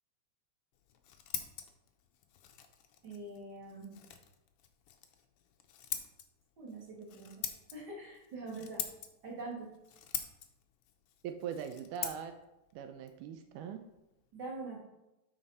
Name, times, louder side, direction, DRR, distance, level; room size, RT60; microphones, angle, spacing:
Scissors, 0.7-14.3, left 9 dB, 90° left, 1.2 m, -46 dB
voice 1, 3.0-4.0 6.6-7.5 7.7-8.9 9.2-9.7 14.3-14.8, right 2 dB, 35° right, -3 dB, 2.6 m, -44 dB
voice 2, 11.2-12.3 12.7-13.8, right 8 dB, 85° right, 7 dB, 2.1 m, -41 dB
12.0 x 5.0 x 4.2 m, 0.94 s
omnidirectional pair, 3.6 m